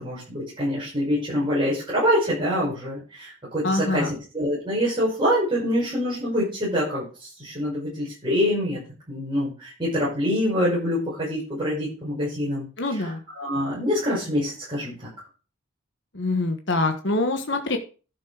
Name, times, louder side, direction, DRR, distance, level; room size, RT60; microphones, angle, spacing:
voice 1, 0.0-4.1 4.3-8.8 9.1-12.7 12.9-14.9, equal, 20° right, -8 dB, 6.0 m, -25 dB
voice 2, 3.6-4.1 12.8-13.2 16.1-17.8, left 2 dB, 55° left, 5 dB, 1.4 m, -25 dB
11.5 x 6.7 x 4.9 m, 0.35 s
head